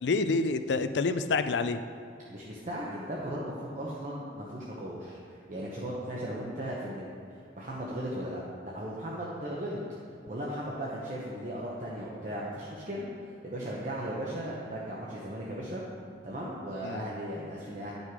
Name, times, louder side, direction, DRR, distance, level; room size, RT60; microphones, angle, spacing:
voice 1, 0.0-1.8 16.8-17.1, left 3 dB, 70° left, 10 dB, 0.4 m, -28 dB
voice 2, 2.3-9.8 10.3-13.1 13.4-15.8 16.2-17.9, right 1 dB, 45° right, -5 dB, 0.9 m, -37 dB
10.5 x 5.3 x 4.8 m, 2.4 s
head